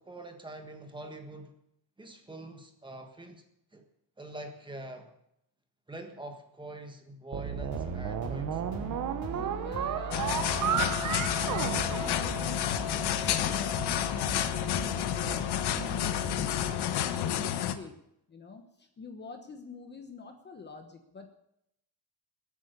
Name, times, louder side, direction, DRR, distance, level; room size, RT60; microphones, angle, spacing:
voice 1, 0.0-1.5 2.0-3.4 3.7-3.9 4.2-5.1 5.9-8.7, right 2 dB, 10° right, 5 dB, 1.5 m, -44 dB
sound 1, 7.3-12.8, right 10 dB, 45° right, 0.9 m, -33 dB
sound 2, 7.5-16.7, left 2 dB, 40° left, 4.7 m, -40 dB
voice 2, 9.3-15.4 15.8-18.0 18.3-21.3, left 4 dB, 25° left, 5 dB, 1.1 m, -46 dB
sound 3, 10.1-17.7, left 10 dB, 60° left, 1.2 m, -30 dB
21.0 x 8.7 x 6.7 m, 0.77 s
cardioid pair, 175°, 43 cm